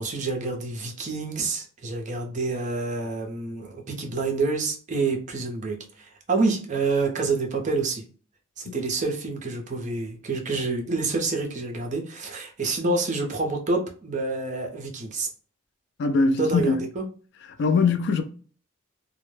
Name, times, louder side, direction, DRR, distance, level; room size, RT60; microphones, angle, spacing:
voice 1, 0.0-8.0 8.6-15.3 16.4-17.0, right 3 dB, 35° right, 0.5 m, -28 dB
voice 2, 16.0-16.8 17.6-18.2, left 4 dB, 55° left, 0.3 m, -22 dB
2.1 x 2.0 x 3.1 m
head